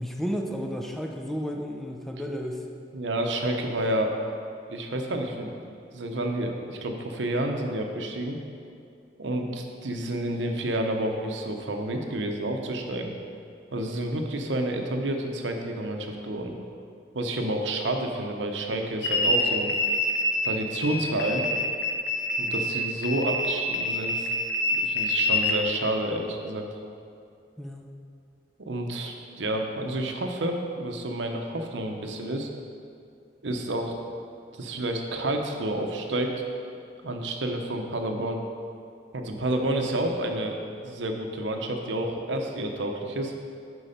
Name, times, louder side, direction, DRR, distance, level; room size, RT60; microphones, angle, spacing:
voice 1, 0.0-2.7 27.6-27.9, equal, ahead, 1 dB, 0.6 m, -32 dB
voice 2, 2.9-4.1 4.7-5.6 5.9-8.4 9.2-13.1 13.7-16.5 17.1-19.7 20.4-21.4 22.4-24.3 24.7-26.6 28.6-32.5 33.4-33.9 34.5-36.3 37.0-38.4 39.1-40.6 40.8-43.3, right 1 dB, 90° right, 3 dB, 0.8 m, -29 dB
sound 1, 19.0-20.6 20.8-25.6, left 1 dB, 75° left, 0.8 m, -26 dB
8.4 x 4.6 x 5.2 m, 2.4 s
head